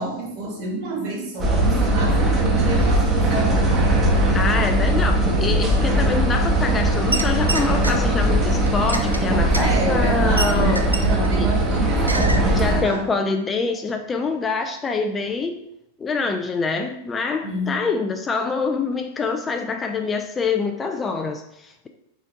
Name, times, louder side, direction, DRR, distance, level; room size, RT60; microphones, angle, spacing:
voice 1, 0.0-4.0 4.9-5.0 9.6-13.0 17.4-17.8, right 2 dB, 40° right, -1 dB, 1.3 m, -28 dB
sound 1, 1.4-12.8, right 1 dB, 20° right, 0.7 m, -20 dB
voice 2, 4.3-10.8 11.4-11.5 12.5-15.6 16.0-21.9, left 4 dB, 20° left, 5 dB, 0.3 m, -25 dB
sound 2, 7.1-7.9 8.7-11.3 11.6-11.8 12.1-12.4 12.8-12.9, right 2 dB, 80° right, 0.4 m, -27 dB
4.2 x 3.7 x 2.6 m, 0.81 s
figure-of-eight pair, 90°, 0 cm